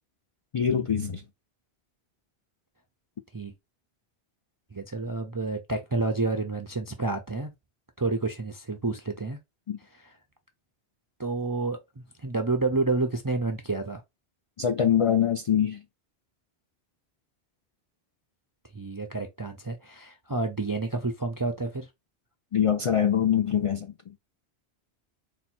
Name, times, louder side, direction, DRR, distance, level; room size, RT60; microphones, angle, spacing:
voice 1, 0.5-1.2 9.7-9.8 14.6-15.8 22.5-23.9, left 8 dB, 60° left, 0.3 m, -24 dB
voice 2, 4.7-7.5 8.0-9.4 9.8-10.2 11.2-14.0 18.7-21.9, right 3 dB, 35° right, 0.3 m, -29 dB
4.3 x 2.2 x 4.2 m
omnidirectional pair, 1.1 m